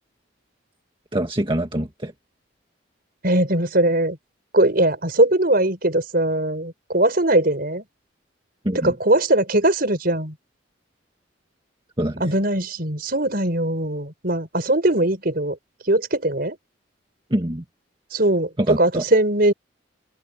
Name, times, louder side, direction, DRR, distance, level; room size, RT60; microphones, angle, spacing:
voice 1, 1.1-2.1 8.7-8.9 12.0-12.3 17.3-17.6 18.6-19.0, right 1 dB, 25° right, 1.9 m, -24 dB
voice 2, 3.2-4.2 4.5-7.8 8.7-10.4 12.2-15.6 15.8-16.6 18.1-19.5, right 1 dB, 50° right, 5.8 m, -20 dB
head